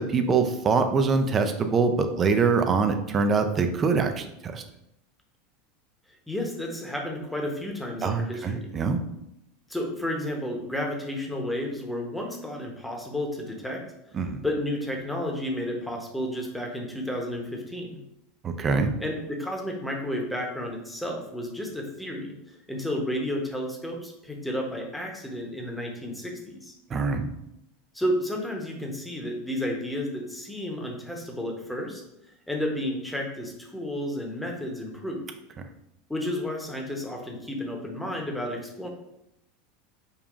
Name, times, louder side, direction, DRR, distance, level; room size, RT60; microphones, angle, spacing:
voice 1, 0.0-4.6 8.0-9.0 14.1-14.4 18.4-19.0 26.9-27.3, right 4 dB, 30° right, 6 dB, 0.5 m, -24 dB
voice 2, 6.3-8.7 9.7-13.8 14.4-18.0 19.0-22.3 22.7-26.7 27.9-32.0 32.5-35.3 36.1-38.9, left 1 dB, 5° left, 1 dB, 0.9 m, -32 dB
5.3 x 2.3 x 2.5 m, 0.82 s
hypercardioid pair, 90°, 0 cm